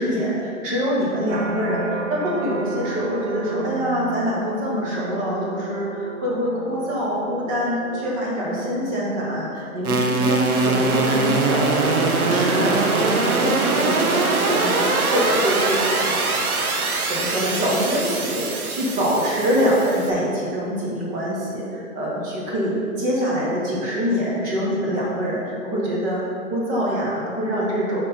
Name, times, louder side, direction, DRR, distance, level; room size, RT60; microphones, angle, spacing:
voice 1, 0.0-16.5 17.1-26.2 26.5-28.0, equal, 20° right, -5 dB, 1.2 m, -25 dB
sound 1, 1.3-16.5 17.0-17.4, right 2 dB, 50° right, 0.9 m, -36 dB
sound 2, 9.8-20.1, right 3 dB, 80° right, 1.0 m, -22 dB
6.4 x 4.3 x 5.5 m, 2.5 s
hypercardioid pair, 145°, 44 cm